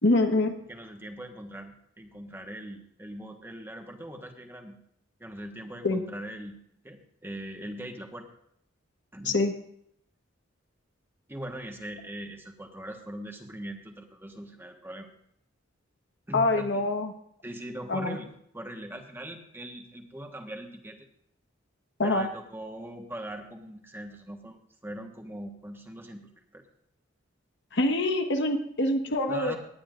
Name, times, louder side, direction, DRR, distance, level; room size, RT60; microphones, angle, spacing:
voice 1, 0.0-0.6 5.8-6.0 9.2-9.5 16.3-17.1 17.9-18.2 22.0-22.3 27.7-29.6, left 2 dB, 65° left, 5 dB, 1.3 m, -25 dB
voice 2, 0.7-4.7 5.2-6.6 6.8-8.3 9.1-9.4 11.3-15.1 16.3-16.8 17.4-21.1 22.0-26.6 29.3-29.6, right 1 dB, 10° right, 3 dB, 1.4 m, -41 dB
18.5 x 9.9 x 2.5 m, 0.70 s
head